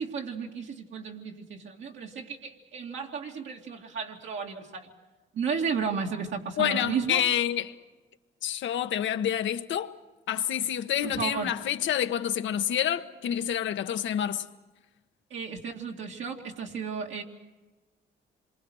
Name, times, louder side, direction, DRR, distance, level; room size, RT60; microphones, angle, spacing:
voice 1, 0.0-4.9 5.3-7.2 11.0-11.5 15.3-17.2, right 6 dB, 70° right, 2.6 m, -33 dB
voice 2, 6.6-7.7 8.4-9.9 10.3-14.4, left 10 dB, 70° left, 1.2 m, -28 dB
27.0 x 23.5 x 6.4 m
cardioid pair, 90°, 20 cm